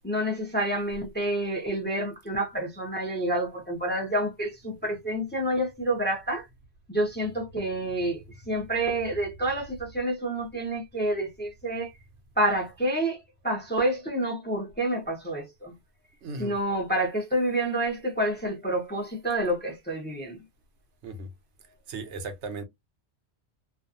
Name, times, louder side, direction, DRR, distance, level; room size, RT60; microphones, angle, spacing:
voice 1, 0.0-6.5 6.9-11.9 12.4-13.2 13.4-15.7 16.4-20.4, right 1 dB, 10° left, 0.6 m, -28 dB
voice 2, 16.2-16.6 21.0-21.3 21.9-22.6, right 3 dB, 75° right, 1.0 m, -36 dB
2.5 x 2.3 x 2.6 m
omnidirectional pair, 1.2 m